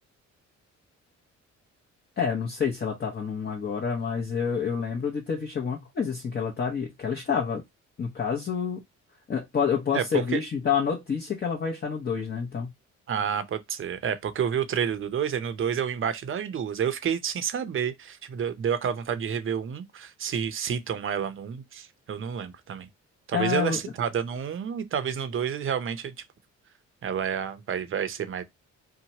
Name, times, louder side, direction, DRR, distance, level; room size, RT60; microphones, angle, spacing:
voice 1, 2.2-7.6 8.0-8.8 9.3-12.7 23.3-23.8, left 6 dB, 35° left, 0.8 m, -28 dB
voice 2, 9.9-10.4 13.1-22.9 23.3-26.1 27.0-28.4, right 8 dB, 45° right, 0.6 m, -29 dB
2.8 x 2.2 x 2.8 m
cardioid pair, 90°, 30 cm